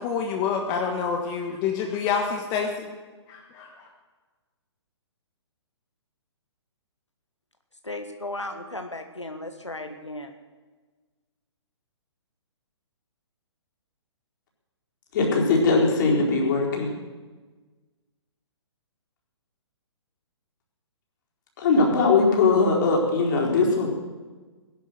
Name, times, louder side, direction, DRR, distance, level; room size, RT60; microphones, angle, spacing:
voice 1, 0.0-2.9 3.3-3.9, left 6 dB, 25° left, 3 dB, 1.5 m, -27 dB
voice 2, 7.8-10.3, left 2 dB, 90° left, 6 dB, 1.5 m, -35 dB
voice 3, 15.1-16.9 21.6-23.9, left 3 dB, 45° left, -1 dB, 4.3 m, -20 dB
18.5 x 11.5 x 6.6 m, 1.3 s
figure-of-eight pair, 125°, 15 cm